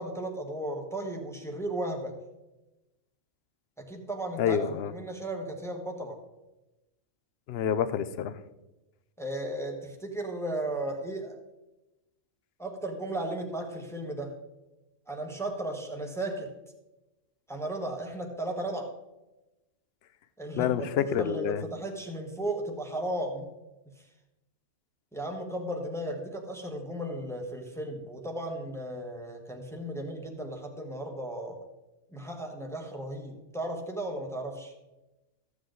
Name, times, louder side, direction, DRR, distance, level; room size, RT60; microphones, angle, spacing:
voice 1, 0.0-2.1 3.8-4.6 4.9-6.2 9.2-11.4 12.6-14.4 15.1-16.5 17.5-18.9 20.4-23.5 25.1-31.6 32.1-34.7, right 1 dB, ahead, 2 dB, 1.3 m, -35 dB
voice 2, 4.4-4.9 7.5-8.3 20.6-21.6, left 8 dB, 60° left, 13 dB, 0.8 m, -28 dB
14.0 x 8.1 x 3.9 m, 1.0 s
omnidirectional pair, 1.3 m